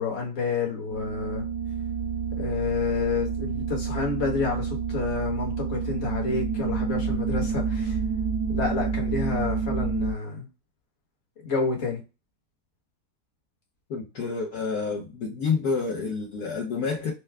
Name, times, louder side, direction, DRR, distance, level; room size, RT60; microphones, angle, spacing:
voice 1, 0.0-1.4 2.4-8.0 8.5-10.5 11.4-12.0, left 5 dB, 40° left, 0 dB, 1.4 m, -29 dB
sound 1, 0.9-10.1, right 6 dB, 90° right, 1.4 m, -29 dB
voice 2, 13.9-17.1, left 5 dB, 65° left, -3 dB, 1.3 m, -28 dB
4.7 x 2.2 x 3.3 m, 0.29 s
omnidirectional pair, 1.9 m